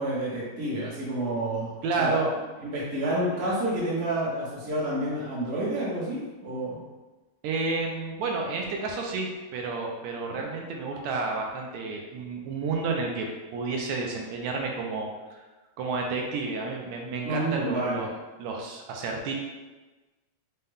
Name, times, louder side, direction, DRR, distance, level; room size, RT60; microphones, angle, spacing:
voice 1, 0.0-1.7 2.0-2.2 2.6-6.8 10.3-10.4 17.2-18.1, right 1 dB, 60° right, -7 dB, 0.6 m, -29 dB
voice 2, 1.8-2.3 7.4-15.4 15.8-18.1 18.4-19.3, right 3 dB, 80° right, 1 dB, 1.8 m, -30 dB
5.5 x 2.2 x 3.4 m, 1.2 s
omnidirectional pair, 3.3 m